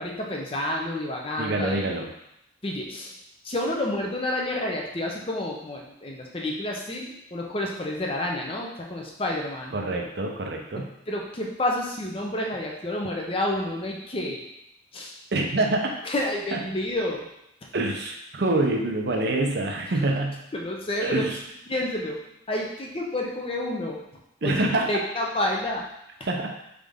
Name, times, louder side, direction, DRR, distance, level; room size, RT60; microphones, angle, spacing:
voice 1, 0.0-1.9 2.6-3.1 3.4-9.8 10.8-14.4 14.9-15.1 16.0-17.3 20.1-20.2 20.5-21.4 21.7-22.2 22.5-24.0 24.4-25.8, left 1 dB, 30° left, -1 dB, 0.6 m, -29 dB
voice 2, 1.4-2.1 9.7-10.9 15.3-16.0 16.5-16.6 17.7-20.4 21.0-21.4 24.4-24.9 26.3-26.5, right 2 dB, 60° right, 2 dB, 0.6 m, -26 dB
3.9 x 3.6 x 3.6 m, 0.80 s
head